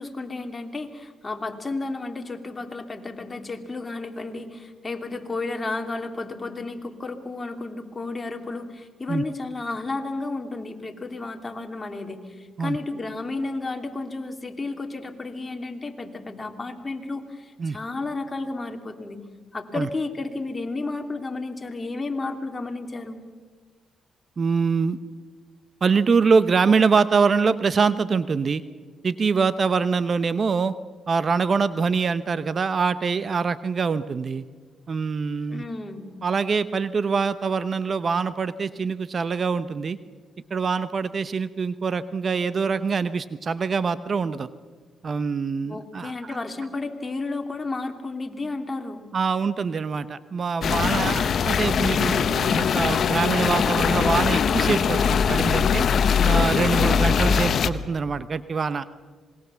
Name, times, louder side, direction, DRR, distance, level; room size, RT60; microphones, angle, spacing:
voice 1, 0.0-19.2 19.5-23.2 35.5-36.1 45.7-49.0 56.8-57.3, left 3 dB, 30° left, 5 dB, 2.9 m, -32 dB
voice 2, 24.4-25.0 25.8-28.6 29.0-30.7 31.1-34.4 34.9-35.6 36.2-40.0 40.5-44.5 45.0-46.4 49.1-55.9 56.2-58.9, right 5 dB, 50° right, 14 dB, 0.9 m, -24 dB
sound 1, 50.6-57.7, left 6 dB, 60° left, 1.0 m, -21 dB
26.5 x 21.0 x 7.0 m, 1.5 s
supercardioid pair, 65°, 0 cm